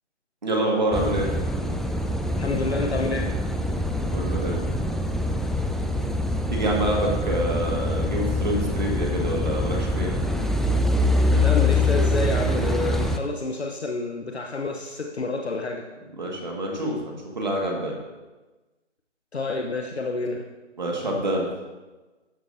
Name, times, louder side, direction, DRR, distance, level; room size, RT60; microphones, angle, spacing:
voice 1, 0.4-1.3 4.1-4.6 6.5-10.1 16.2-18.0 20.8-21.5, right 1 dB, 40° right, -1 dB, 1.9 m, -26 dB
Car passing by / Idling / Accelerating revving vroom, 0.9-13.2, left 1 dB, ahead, 0.3 m, -24 dB
voice 2, 2.4-3.3 11.3-15.8 19.3-20.4, left 3 dB, 60° left, 3 dB, 1.0 m, -28 dB
12.5 x 8.9 x 2.7 m, 1.2 s
figure-of-eight pair, 170°, 36 cm